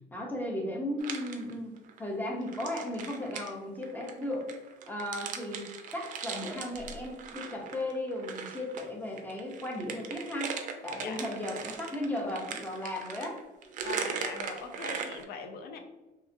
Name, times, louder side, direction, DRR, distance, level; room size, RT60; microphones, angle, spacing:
voice 1, 0.1-1.7 2.0-4.5 4.9-5.7 5.9-10.6 10.8-13.4, left 1 dB, 10° left, 0 dB, 0.6 m, -35 dB
sound 1, 1.0-2.0 2.4-8.9 9.2-15.2, right 6 dB, 50° right, 0.4 m, -39 dB
voice 2, 10.9-11.2 13.8-15.8, left 5 dB, 70° left, 5 dB, 0.5 m, -41 dB
2.8 x 2.3 x 2.5 m, 1.1 s
cardioid pair, 110°, 17 cm